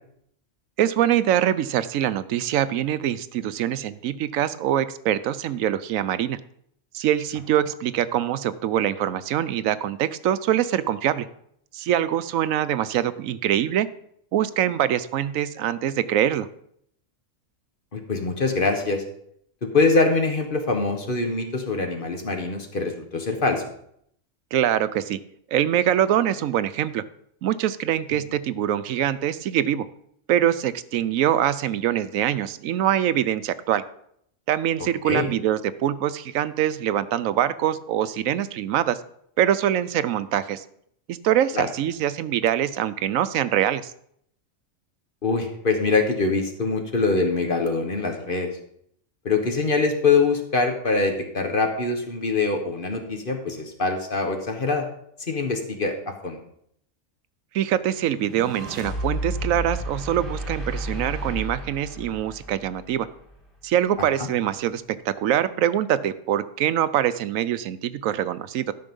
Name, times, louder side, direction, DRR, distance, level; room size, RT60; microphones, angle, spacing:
voice 1, 0.8-6.4 6.9-11.3 11.7-13.9 14.3-16.5 24.5-25.2 25.5-27.0 27.4-29.8 30.3-33.8 34.5-39.0 39.4-40.6 41.1-43.9 57.5-63.1 63.6-68.7, right 11 dB, 85° right, 14 dB, 1.0 m, -24 dB
voice 2, 17.9-19.0 19.6-23.6 35.0-35.3 41.5-41.7 45.2-48.5 49.2-54.8 55.3-55.9 56.2-56.4, left 3 dB, 45° left, 4 dB, 1.4 m, -23 dB
sound 1, 58.1-63.4, equal, ahead, 2.4 m, -32 dB
12.5 x 5.8 x 5.3 m, 0.70 s
omnidirectional pair, 1.4 m